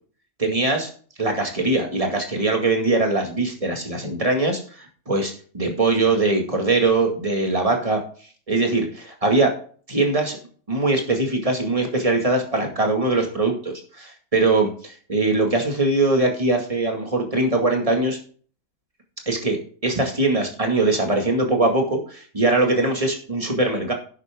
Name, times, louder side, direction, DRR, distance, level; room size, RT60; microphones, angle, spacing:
voice 1, 0.4-0.9 1.2-8.0 8.5-9.5 9.9-10.4 10.7-18.2 19.3-23.9, right 2 dB, 20° right, 2 dB, 2.2 m, -22 dB
11.0 x 8.3 x 3.7 m, 0.43 s
omnidirectional pair, 1.6 m